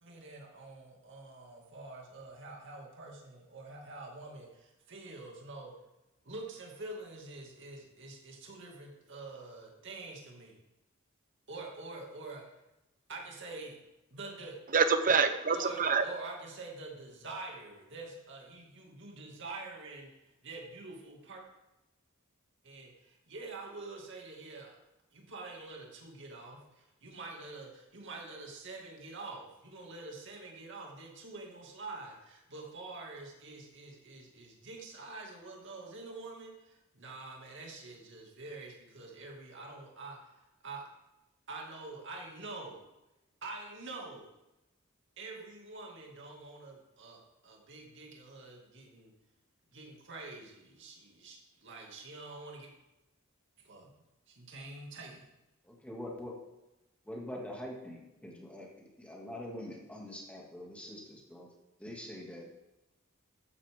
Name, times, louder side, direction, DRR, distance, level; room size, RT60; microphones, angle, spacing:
voice 1, 0.0-5.7 6.2-10.6 11.5-12.4 13.1-13.8 14.1-14.6 15.5-20.1 20.4-21.4 22.6-24.7 25.1-40.8 41.5-42.8 43.4-44.3 45.2-49.1 49.7-52.7 53.6-53.9 54.3-55.3, right 3 dB, 60° right, -1 dB, 2.5 m, -46 dB
voice 2, 14.7-16.0, right 5 dB, 40° right, 9 dB, 0.8 m, -26 dB
voice 3, 55.6-56.3 57.0-61.5 61.8-62.5, left 1 dB, 5° left, -2 dB, 2.5 m, -44 dB
14.5 x 9.7 x 3.8 m, 0.97 s
head